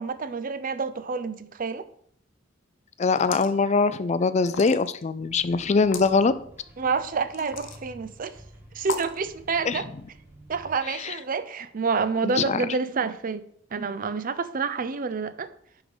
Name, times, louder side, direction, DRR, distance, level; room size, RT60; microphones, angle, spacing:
voice 1, 0.0-1.9 6.8-8.4 8.7-9.9 10.5-13.4 13.7-15.5, right 5 dB, 45° right, 0.5 m, -28 dB
voice 2, 3.0-6.3 9.6-9.8 10.9-11.1 12.2-12.6, left 4 dB, 35° left, 0.4 m, -23 dB
sound 1, 3.1-3.6 4.4-5.0 5.8-6.1 7.3-7.8 8.8-9.2, left 4 dB, 70° left, 0.9 m, -35 dB
sound 2, 5.2-10.8, right 1 dB, 10° right, 1.2 m, -50 dB
10.5 x 3.6 x 5.1 m
head